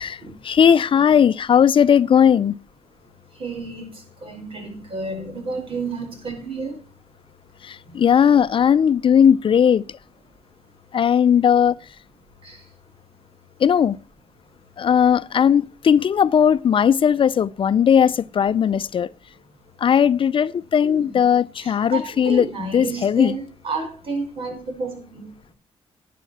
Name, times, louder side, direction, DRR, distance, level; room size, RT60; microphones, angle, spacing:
voice 1, 0.4-2.6 7.7-9.8 10.9-11.7 13.6-14.0 14.8-19.1 19.8-23.4, left 8 dB, 55° left, 0.5 m, -17 dB
voice 2, 3.3-6.8 7.9-8.0 12.4-12.6 20.8-21.2 21.6-25.3, right 3 dB, 60° right, 4.9 m, -31 dB
11.5 x 9.3 x 4.2 m
cardioid pair, 65°, 11 cm